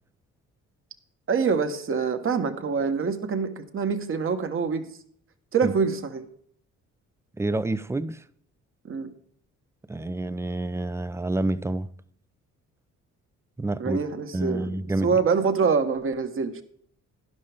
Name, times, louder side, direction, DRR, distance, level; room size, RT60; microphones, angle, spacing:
voice 1, 1.3-4.8 5.5-6.3 8.8-9.1 13.8-14.7 15.0-16.6, right 5 dB, 45° right, 1.3 m, -25 dB
voice 2, 7.4-8.2 9.9-11.9 13.6-14.0 14.3-15.1, right 2 dB, 10° right, 0.5 m, -28 dB
12.0 x 11.0 x 3.5 m
cardioid pair, 90°, 30 cm